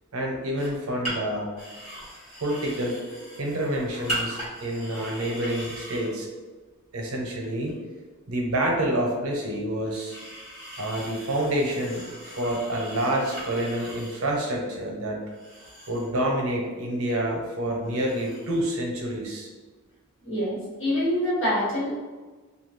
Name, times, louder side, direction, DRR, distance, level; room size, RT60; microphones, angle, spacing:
voice 1, 0.1-1.5 2.4-3.0 3.4-6.3 6.9-7.7 8.3-10.2 10.8-15.2 15.9-19.5, right 1 dB, 80° right, 0 dB, 0.7 m, -28 dB
sound 1, 0.6-0.8 1.0-1.1 1.6-6.1 7.7-7.8 9.9-14.4 15.3-16.2 17.8-18.7 18.9-19.1, right 1 dB, 25° left, 1.1 m, -39 dB
voice 2, 20.2-22.0, equal, 60° left, -8 dB, 1.2 m, -26 dB
2.7 x 2.3 x 3.0 m, 1.3 s
head